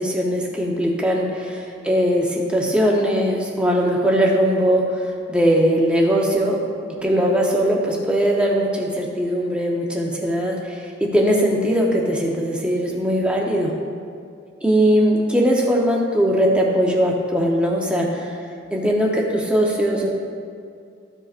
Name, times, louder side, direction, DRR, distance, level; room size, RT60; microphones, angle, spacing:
voice 1, 0.0-5.0 5.3-6.6 7.0-13.7 14.6-18.3 18.7-20.1, equal, 5° right, -2 dB, 0.8 m, -20 dB
13.5 x 5.2 x 2.5 m, 2.4 s
head